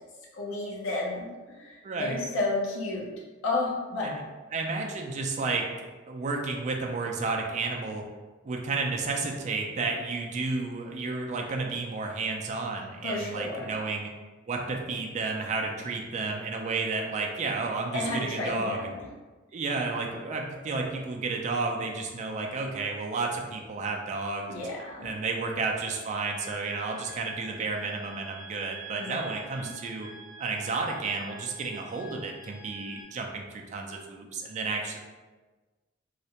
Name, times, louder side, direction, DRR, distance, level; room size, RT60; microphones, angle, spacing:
voice 1, 0.3-1.3 1.6-3.1 3.4-4.1 13.0-13.7 17.9-19.0 24.5-25.1 29.0-29.7, left 2 dB, 70° left, -3 dB, 0.6 m, -32 dB
voice 2, 1.8-2.2 4.0-4.2 4.5-8.1 8.4-14.1 14.5-18.9 19.5-24.5 25.0-30.1 30.4-35.0, right 3 dB, 35° right, 1 dB, 0.3 m, -32 dB
sound 1, 26.1-33.0, right 2 dB, 20° left, 0.6 m, -47 dB
2.4 x 2.1 x 2.8 m, 1.3 s
head